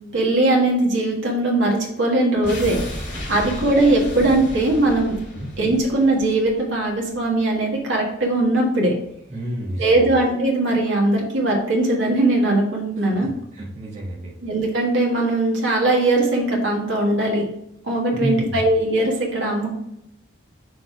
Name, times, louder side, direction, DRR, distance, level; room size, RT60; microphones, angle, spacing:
voice 1, 0.1-5.1 5.6-8.9 9.8-13.3 14.4-17.4 17.8-19.7, right 2 dB, 80° right, -2 dB, 1.5 m, -20 dB
sound 1, 2.4-7.4 7.7-7.8, equal, 65° left, 2.0 m, -34 dB
voice 2, 9.3-10.1 13.0-14.3 18.1-18.6, equal, 35° right, -4 dB, 1.1 m, -30 dB
6.3 x 3.3 x 4.4 m, 0.78 s
head